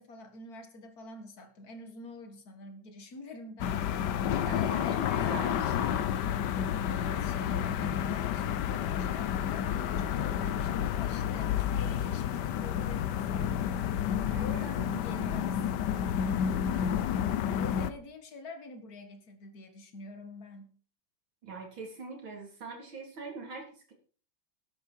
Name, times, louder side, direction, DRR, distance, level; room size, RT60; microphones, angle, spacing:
voice 1, 0.0-4.0 4.4-5.9 6.9-13.6 14.4-17.2 17.6-20.7, left 2 dB, 50° left, 6 dB, 2.3 m, -46 dB
sound 1, 3.6-17.9, left 9 dB, 65° left, 1.3 m, -30 dB
voice 2, 4.4-6.1 14.2-14.7 21.4-23.9, right 4 dB, 80° right, 1 dB, 4.3 m, -43 dB
13.0 x 10.5 x 4.5 m, 0.41 s
omnidirectional pair, 2.2 m